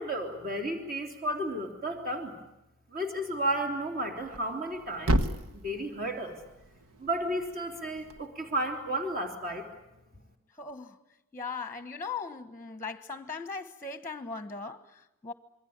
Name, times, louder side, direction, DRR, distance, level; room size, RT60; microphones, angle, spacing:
voice 1, 0.0-2.3 2.9-5.3 5.5-6.4 7.0-9.7, right 1 dB, 40° right, 3.6 m, -33 dB
Thump thud, 4.2-8.3, equal, 80° right, 1.4 m, -34 dB
voice 2, 10.6-11.0 11.3-15.3, left 4 dB, 10° left, 1.3 m, -39 dB
27.5 x 23.0 x 8.8 m
head